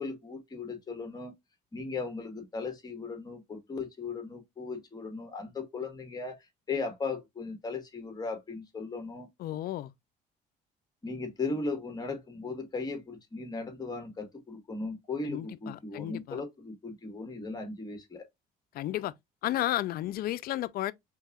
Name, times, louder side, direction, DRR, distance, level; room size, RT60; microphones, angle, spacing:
voice 1, 0.0-1.3 1.7-9.3 11.0-18.3, left 3 dB, 25° left, 1.5 m, -37 dB
voice 2, 9.4-9.9 15.3-16.4 18.7-19.1 19.4-20.9, left 14 dB, 60° left, 0.4 m, -32 dB
4.6 x 3.5 x 2.3 m
cardioid pair, 110°, 17 cm